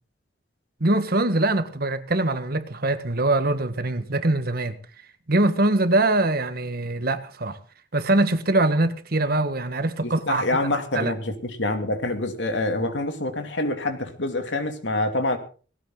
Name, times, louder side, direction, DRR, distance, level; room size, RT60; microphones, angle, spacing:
voice 1, 0.8-4.8 5.3-7.6 7.9-10.4 10.9-11.1, right 2 dB, 55° right, 1.6 m, -23 dB
voice 2, 10.0-15.4, left 2 dB, 80° left, 2.8 m, -26 dB
18.5 x 16.5 x 4.0 m
head